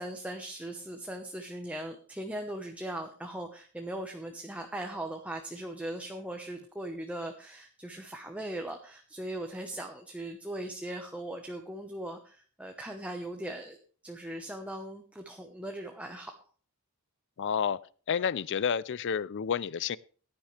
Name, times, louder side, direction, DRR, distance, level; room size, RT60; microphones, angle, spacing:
voice 1, 0.0-13.8 14.0-16.3, right 1 dB, 5° right, 1.0 m, -39 dB
voice 2, 17.4-17.8 18.1-20.0, left 7 dB, 55° left, 0.4 m, -30 dB
16.0 x 10.5 x 3.3 m
head